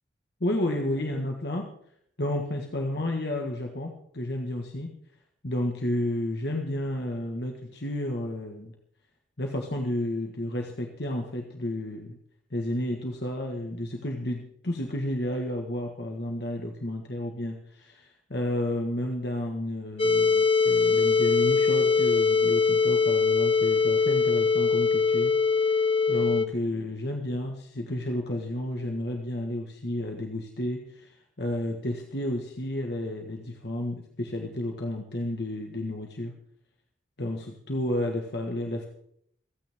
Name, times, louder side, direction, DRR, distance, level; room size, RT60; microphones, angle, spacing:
voice 1, 0.4-1.7 2.2-4.9 5.4-8.7 9.4-12.2 12.5-25.3 25.7-25.8 26.1-36.4 37.2-38.9, left 1 dB, 60° left, 2 dB, 1.6 m, -31 dB
sound 1, 20.0-26.5, left 5 dB, 30° left, 1.0 m, -22 dB
27.5 x 9.4 x 3.6 m, 0.67 s
head